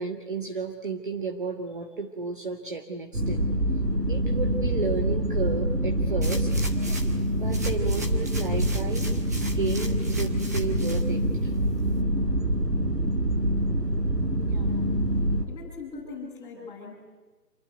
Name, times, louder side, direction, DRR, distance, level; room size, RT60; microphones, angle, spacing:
voice 1, 0.0-3.5 4.1-7.0 7.3-11.5, right 4 dB, 30° right, 4 dB, 1.8 m, -33 dB
sound 1, 3.1-15.4, right 1 dB, 70° right, 6.0 m, -25 dB
sound 2, 6.2-7.2 7.5-11.0 11.5-11.6, right 1 dB, 10° right, 1.2 m, -40 dB
voice 2, 14.4-14.8 15.5-16.9, left 4 dB, 5° left, -6 dB, 7.8 m, -41 dB
28.0 x 22.5 x 9.3 m, 1.3 s
figure-of-eight pair, 160°, 50 cm